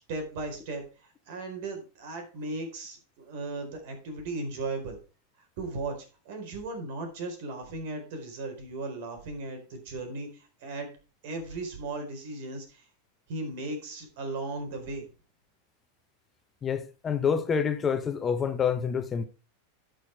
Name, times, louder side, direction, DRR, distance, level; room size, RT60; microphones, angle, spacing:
voice 1, 0.0-5.0 5.6-10.9 11.2-12.9 13.3-15.1, right 2 dB, 65° right, 4.4 m, -36 dB
voice 2, 16.6-19.3, left 7 dB, 25° left, 1.0 m, -27 dB
11.5 x 6.5 x 4.6 m
hypercardioid pair, 125°, 0 cm